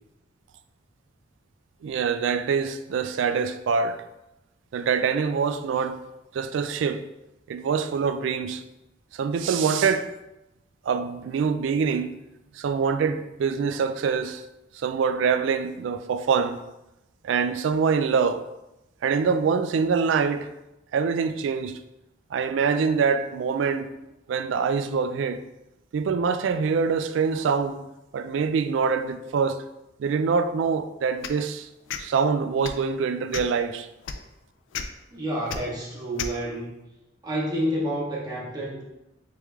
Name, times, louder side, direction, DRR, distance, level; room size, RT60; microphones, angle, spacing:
voice 1, 1.8-4.0 4.7-6.0 6.3-7.0 7.5-8.6 9.1-10.1 10.8-12.1 12.5-14.4 14.7-16.6 17.2-18.4 19.0-20.5 20.9-21.8 22.3-23.9 24.3-25.4 25.9-27.8 28.1-29.6 30.0-31.7 32.0-33.9, right 5 dB, 75° right, 0.3 m, -25 dB
sound 1, 31.2-31.4 31.9-32.0 32.6-32.8 33.3-33.6 34.0-34.2 34.7-34.8 35.5-35.6 36.2-36.3, left 7 dB, 80° left, 0.3 m, -32 dB
voice 2, 35.1-36.7 37.2-38.8, equal, 20° right, 0.7 m, -29 dB
3.4 x 3.4 x 3.1 m
head